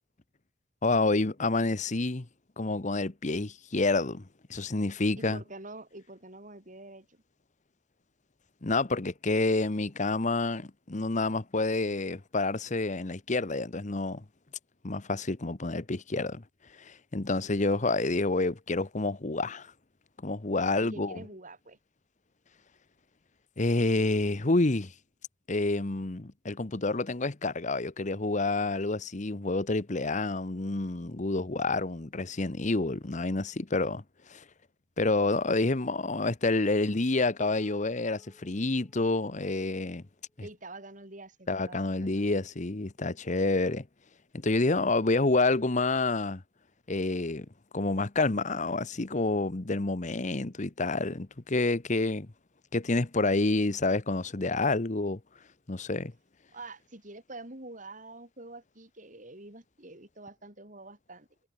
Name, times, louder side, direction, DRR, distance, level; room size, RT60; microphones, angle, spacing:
voice 1, 0.8-2.3 2.6-5.4 8.6-14.2 14.8-16.4 16.8-19.7 20.2-21.2 23.6-24.9 25.5-34.0 34.3-34.4 35.0-40.0 40.4-40.5 41.5-43.9 44.3-46.4 46.9-47.5 47.7-52.3 52.7-55.2 55.7-56.1, left 2 dB, 40° left, 1.1 m, -28 dB
voice 2, 5.2-7.2 20.6-21.8 40.4-42.2 56.5-61.3, right 2 dB, 45° right, 6.6 m, -46 dB
Piano, 37.4-40.6, equal, 10° left, 4.7 m, -59 dB
head